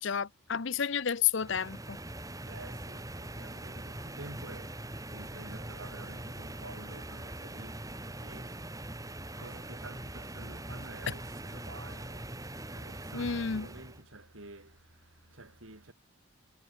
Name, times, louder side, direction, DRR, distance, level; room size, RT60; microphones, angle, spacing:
voice 1, 0.0-2.0 13.1-13.7, left 7 dB, 55° left, 0.7 m, -31 dB
sound 1, 1.4-14.0, right 1 dB, 15° right, 3.2 m, -42 dB
voice 2, 2.4-15.9, right 2 dB, 65° right, 5.0 m, -50 dB
head